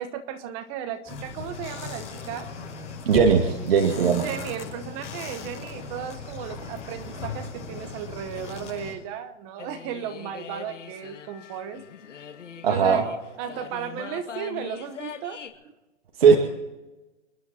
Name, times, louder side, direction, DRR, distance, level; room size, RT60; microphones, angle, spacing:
voice 1, 0.0-2.5 3.9-11.8 12.7-13.0 13.4-15.7, right 8 dB, 15° right, 9 dB, 0.9 m, -35 dB
sound 1, 1.0-8.9, left 3 dB, 20° left, 6.3 m, -37 dB
voice 2, 3.1-4.3 12.6-13.0 16.2-16.4, right 6 dB, 55° right, 2 dB, 2.2 m, -18 dB
sound 2, 9.6-15.5, left 7 dB, 80° left, 2.3 m, -42 dB
29.0 x 11.0 x 4.2 m, 1.1 s
hypercardioid pair, 160°, 36 cm